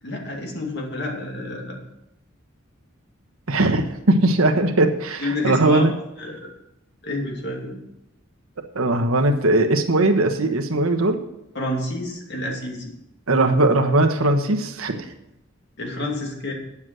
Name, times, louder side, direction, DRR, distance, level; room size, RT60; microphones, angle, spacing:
voice 1, 0.0-1.8 5.2-5.9 6.2-6.5 7.0-7.8 11.5-12.9 15.8-16.5, left 1 dB, 55° left, 0 dB, 2.7 m, -29 dB
voice 2, 3.5-5.9 8.7-11.2 13.3-15.1, right 2 dB, 90° right, 5 dB, 1.3 m, -19 dB
9.7 x 7.3 x 7.7 m, 0.84 s
head